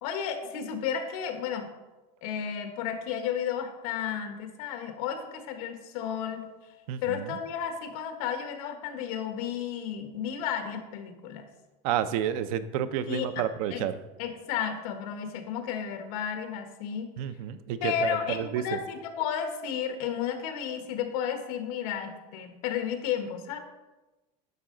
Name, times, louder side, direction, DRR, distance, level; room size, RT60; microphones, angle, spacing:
voice 1, 0.0-1.7 2.2-6.5 7.0-11.4 13.1-13.4 13.7-13.9 14.2-17.1 17.8-23.6, left 8 dB, 70° left, 6 dB, 1.4 m, -33 dB
voice 2, 6.9-7.4 11.8-14.0 17.2-18.8, right 10 dB, 65° right, 12 dB, 0.6 m, -30 dB
10.5 x 6.7 x 3.8 m, 1.1 s
cardioid pair, 180°, 20 cm